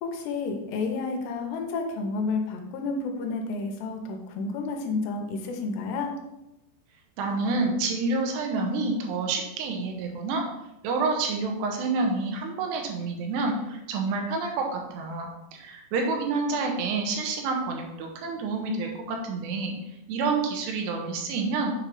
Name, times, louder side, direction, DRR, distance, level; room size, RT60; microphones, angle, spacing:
voice 1, 0.0-6.1, left 3 dB, 85° left, 3 dB, 2.9 m, -30 dB
voice 2, 7.2-10.4 10.8-19.7 20.1-21.7, right 3 dB, 80° right, 2 dB, 2.9 m, -28 dB
7.2 x 3.2 x 5.2 m, 0.93 s
omnidirectional pair, 4.9 m